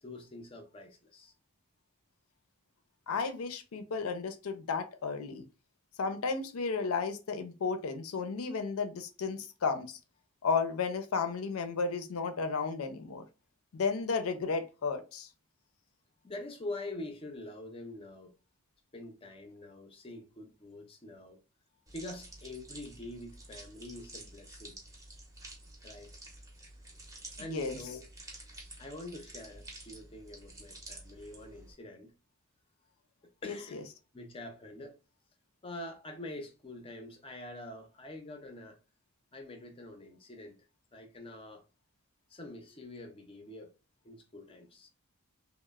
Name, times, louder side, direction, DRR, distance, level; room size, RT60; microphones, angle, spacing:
voice 1, 0.0-1.3 16.2-18.3 18.9-21.4 21.9-24.8 25.8-26.2 27.4-28.0 28.8-32.1 33.2-33.8 34.1-35.0 35.6-38.8 39.3-40.6 40.9-41.6 42.3-43.7 44.0-44.9, left 2 dB, 25° left, 0.4 m, -45 dB
voice 2, 3.1-5.4 6.0-10.0 10.4-13.2 13.7-15.3 27.4-27.8 33.4-33.8, left 4 dB, 80° left, 0.5 m, -33 dB
sound 1, 21.9-31.7, right 2 dB, 15° right, 0.6 m, -50 dB
3.0 x 2.0 x 2.2 m
head